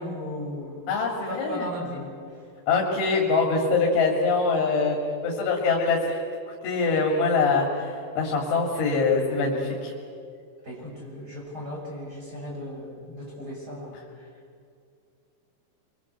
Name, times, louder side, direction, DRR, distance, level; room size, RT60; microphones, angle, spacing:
voice 1, 0.0-0.9 1.3-2.4 10.6-14.3, equal, 20° right, -3 dB, 7.3 m, -36 dB
voice 2, 0.9-1.7 2.7-5.0 5.2-6.2 6.6-9.9, left 4 dB, 85° left, -1 dB, 5.0 m, -23 dB
26.0 x 25.0 x 8.1 m, 2.4 s
omnidirectional pair, 5.3 m